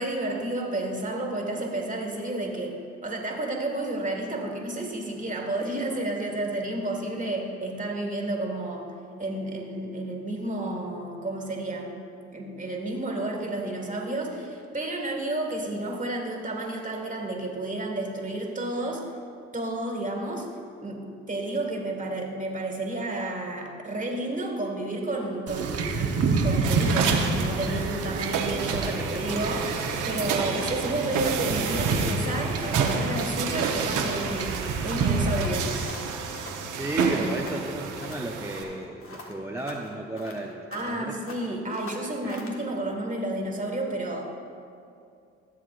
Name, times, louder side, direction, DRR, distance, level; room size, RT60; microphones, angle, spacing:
voice 1, 0.0-2.8 3.0-8.8 9.2-11.9 12.3-19.0 19.5-20.5 20.8-26.1 26.4-29.8 30.1-34.6 34.8-35.7 40.7-44.4, right 2 dB, 25° right, 0 dB, 2.0 m, -31 dB
Wind / Ocean / Boat Water vehicle, 25.5-35.8, right 4 dB, 50° right, 1.0 m, -29 dB
sound 1, 26.6-38.6, right 6 dB, 70° right, 1.1 m, -30 dB
voice 2, 28.7-29.2 36.7-41.1 42.2-42.4, right 2 dB, 10° right, 0 dB, 0.7 m, -33 dB
sound 2, 29.1-31.4 31.7-32.0 32.2-34.1 34.3-36.6 36.9-38.3 38.6-41.0 41.3-42.6, left 2 dB, 45° left, 1.7 m, -45 dB
16.0 x 7.5 x 2.5 m, 2.5 s
hypercardioid pair, 60°, 31 cm